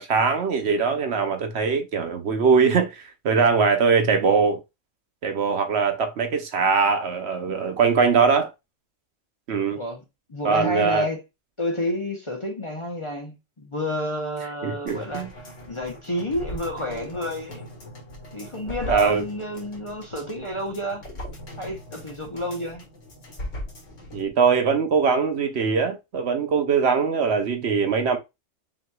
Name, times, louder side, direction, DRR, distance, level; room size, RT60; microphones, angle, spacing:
voice 1, 0.0-4.6 5.2-8.5 9.5-9.8 10.4-11.1 14.6-15.3 18.9-19.2 24.1-28.2, right 5 dB, 60° right, 1.0 m, -21 dB
voice 2, 10.3-11.2 11.6-15.3 15.7-17.6 18.3-21.0 21.6-22.8, left 1 dB, 30° left, 0.8 m, -30 dB
sound 1, 14.9-24.3 24.6-24.7, left 1 dB, 75° left, 2.0 m, -39 dB
5.6 x 3.1 x 2.3 m
omnidirectional pair, 1.3 m